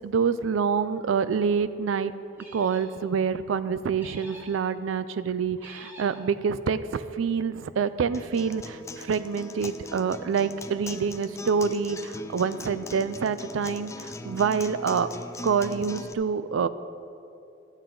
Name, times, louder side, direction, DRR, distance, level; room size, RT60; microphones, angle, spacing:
voice 1, 0.0-2.1 2.5-15.1 15.4-16.7, right 6 dB, 80° right, 14 dB, 0.4 m, -27 dB
sound 1, 2.3-3.0 4.0-4.6 5.6-6.2, right 1 dB, 10° right, 1.5 m, -47 dB
Acoustic guitar, 8.1-16.1, left 3 dB, 15° left, 0.3 m, -40 dB
12.5 x 9.0 x 3.9 m, 2.7 s
head